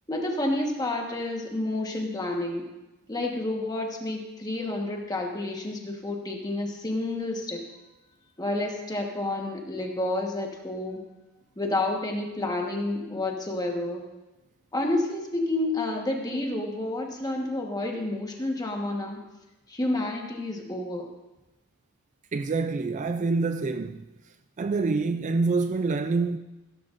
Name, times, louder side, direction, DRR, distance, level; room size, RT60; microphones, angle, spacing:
voice 1, 0.1-2.6 3.1-7.6 8.4-11.0 11.6-14.0 14.7-19.2 19.7-21.1, left 2 dB, 15° left, 1.3 m, -29 dB
voice 2, 22.3-24.0 24.6-26.4, right 3 dB, 35° right, 0.3 m, -26 dB
15.5 x 13.0 x 2.6 m
head